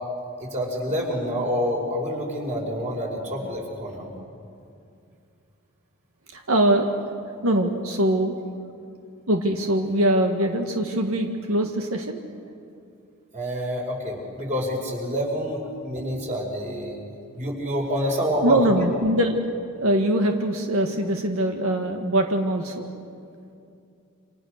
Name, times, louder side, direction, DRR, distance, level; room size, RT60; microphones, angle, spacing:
voice 1, 0.4-4.1 13.3-17.0 17.3-18.6, equal, 35° right, -1 dB, 5.7 m, -27 dB
voice 2, 6.3-6.9 7.4-8.4 9.3-12.2 18.4-19.4 19.8-22.9, right 1 dB, 90° right, 4 dB, 1.8 m, -22 dB
28.5 x 27.0 x 6.6 m, 2.5 s
head